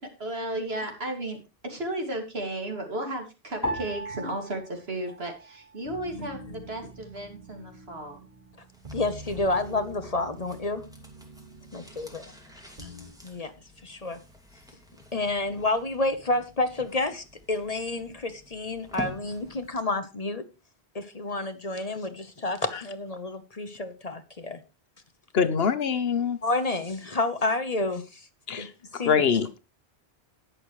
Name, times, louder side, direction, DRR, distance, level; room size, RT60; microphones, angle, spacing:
voice 1, 0.0-8.3, right 1 dB, 75° right, 2.8 m, -34 dB
sound 1, 3.6-6.1 6.4-7.3 7.9-8.3, equal, 15° left, 3.1 m, -38 dB
sound 2, 5.8-13.1, right 1 dB, 55° right, 4.4 m, -46 dB
sound 3, 8.7-19.9 20.2-20.3, left 1 dB, 5° right, 2.3 m, -47 dB
voice 2, 8.9-10.8 11.7-12.2 13.2-13.5 13.8-14.2 15.1-20.4 20.9-24.6 26.4-28.2 28.5-28.7 28.9-29.2, left 2 dB, 40° left, 1.1 m, -29 dB
voice 3, 25.3-26.4 28.5-29.6, left 6 dB, 70° left, 1.2 m, -25 dB
19.0 x 6.6 x 3.2 m
omnidirectional pair, 1.1 m